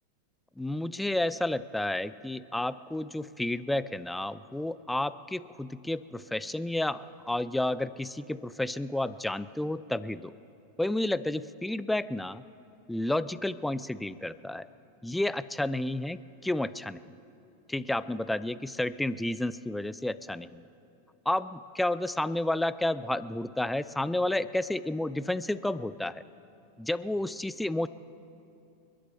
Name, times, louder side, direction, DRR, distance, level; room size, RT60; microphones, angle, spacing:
voice 1, 0.6-10.4 10.8-12.4 12.9-14.7 15.0-17.2 17.7-20.6 21.3-26.2 26.8-27.9, left 1 dB, 5° left, 16 dB, 0.4 m, -31 dB
29.5 x 11.0 x 3.5 m, 2.7 s
figure-of-eight pair, 90°, 0 cm